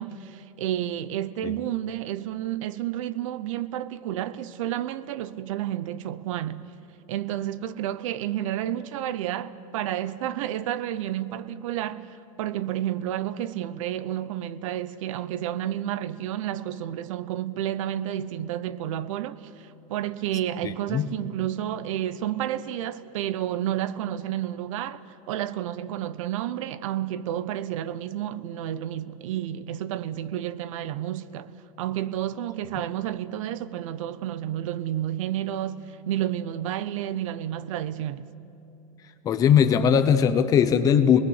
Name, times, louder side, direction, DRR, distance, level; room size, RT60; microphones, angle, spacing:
voice 1, 0.0-6.7 7.1-25.0 25.3-31.5 31.8-38.3, right 11 dB, 65° right, 0.8 m, -30 dB
voice 2, 20.6-21.1 39.2-41.2, left 8 dB, 20° left, 0.8 m, -19 dB
27.0 x 20.0 x 8.2 m
supercardioid pair, 180°, 18 cm